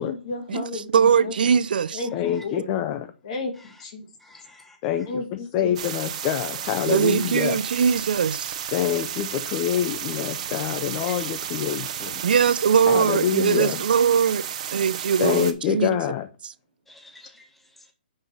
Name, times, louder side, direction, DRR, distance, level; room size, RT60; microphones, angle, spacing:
voice 1, 0.0-1.6 1.9-2.7 3.2-4.1 5.1-5.8 12.1-12.2 13.4-13.5, left 3 dB, 40° left, 1.9 m, -33 dB
voice 2, 0.9-2.0 6.9-8.5 12.2-14.4 14.7-16.0, right 7 dB, 70° right, 0.5 m, -21 dB
voice 3, 2.1-3.1 4.8-5.1 5.5-7.6 8.7-12.2 12.9-13.8 15.2-16.3, left 10 dB, 25° left, 0.4 m, -26 dB
voice 4, 4.2-5.1 8.8-9.0 11.1-11.3 16.9-17.9, left 2 dB, 5° left, 0.9 m, -49 dB
sound 1, 5.8-15.5, right 9 dB, 45° right, 0.8 m, -33 dB
5.5 x 5.3 x 4.4 m
hypercardioid pair, 165°, 5 cm